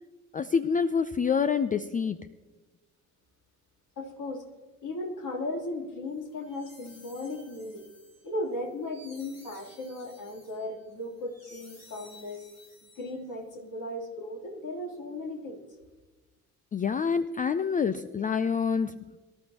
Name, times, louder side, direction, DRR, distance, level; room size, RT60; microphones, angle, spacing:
voice 1, 0.3-2.2 16.7-19.2, left 6 dB, 20° left, 14 dB, 0.5 m, -27 dB
voice 2, 4.0-4.4 4.8-7.8 8.2-12.4 13.0-15.6, left 1 dB, 45° left, 0 dB, 3.3 m, -36 dB
sound 1, 6.2-13.5, left 1 dB, 75° left, 5.3 m, -55 dB
23.5 x 13.0 x 2.9 m, 1.2 s
figure-of-eight pair, 50°, 42 cm